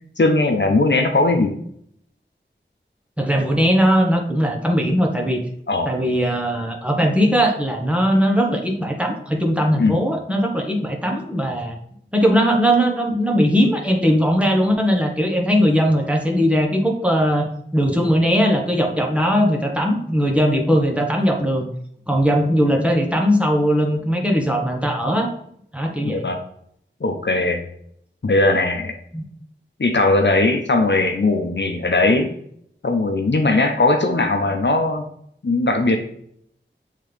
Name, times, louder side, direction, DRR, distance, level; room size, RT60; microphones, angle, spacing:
voice 1, 0.2-1.5 5.7-5.9 9.8-10.0 26.0-26.4 27.0-27.6 28.2-29.0 29.8-32.3 32.8-35.0 35.4-36.0, left 2 dB, 65° left, 4 dB, 0.7 m, -19 dB
voice 2, 3.2-5.4 5.8-11.8 12.1-21.7 22.1-25.3 25.7-26.2 29.1-29.2, equal, 5° right, 1 dB, 1.1 m, -19 dB
7.6 x 3.7 x 3.4 m, 0.68 s
wide cardioid pair, 50°, 20 cm